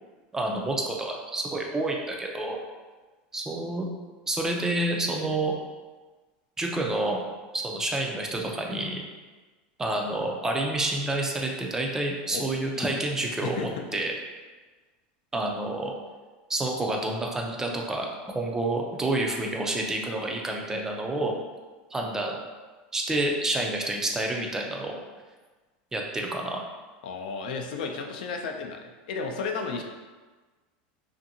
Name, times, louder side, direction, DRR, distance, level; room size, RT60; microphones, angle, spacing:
voice 1, 0.3-2.6 3.3-3.9 4.3-5.5 6.6-7.3 7.5-9.0 9.8-14.1 15.3-15.9 16.5-18.1 18.3-21.4 21.9-22.4 22.9-25.0 25.9-26.6, right 2 dB, 10° right, 1 dB, 0.3 m, -28 dB
voice 2, 13.4-13.9 27.0-29.8, left 5 dB, 80° left, 3 dB, 0.4 m, -33 dB
2.6 x 2.5 x 2.7 m, 1.3 s
supercardioid pair, 140°, 5 cm